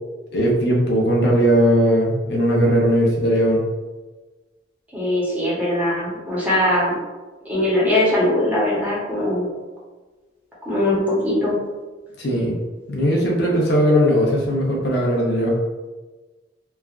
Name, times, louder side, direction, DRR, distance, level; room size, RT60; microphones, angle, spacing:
voice 1, 0.3-3.6 12.2-12.6 12.9-15.5, equal, 60° left, -2 dB, 0.6 m, -18 dB
voice 2, 4.9-6.9 7.4-9.5 10.6-11.6, left 1 dB, 10° right, -8 dB, 0.9 m, -21 dB
3.2 x 2.3 x 2.4 m, 1.2 s
head